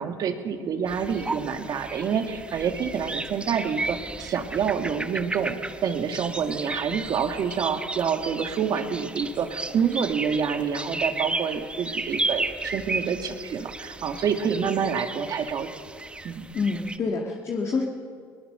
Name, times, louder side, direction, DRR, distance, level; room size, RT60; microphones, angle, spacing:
voice 1, 0.0-15.7 16.2-16.5, right 7 dB, 50° right, 6 dB, 2.1 m, -27 dB
sound 1, 0.9-17.0, right 2 dB, 15° right, 1.0 m, -34 dB
voice 2, 16.5-17.8, left 4 dB, 40° left, 1 dB, 2.0 m, -27 dB
21.0 x 19.5 x 6.8 m, 2.3 s
supercardioid pair, 100°, 8 cm